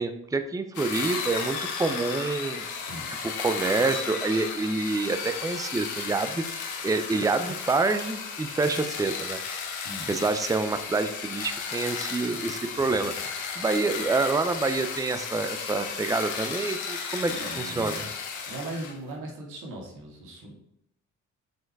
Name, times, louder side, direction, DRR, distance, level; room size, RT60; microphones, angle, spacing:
voice 1, 0.0-2.7 3.2-6.4 6.8-9.4 10.1-13.1 13.6-18.1, right 3 dB, 10° right, 9 dB, 0.6 m, -27 dB
sound 1, 0.7-19.0, left 5 dB, 80° left, 1.4 m, -34 dB
voice 2, 2.8-3.2 9.8-10.1 12.7-12.9 17.3-18.1 18.5-20.5, right 1 dB, 90° right, -1 dB, 2.1 m, -39 dB
6.4 x 4.8 x 4.7 m, 0.79 s
cardioid pair, 90°, 30 cm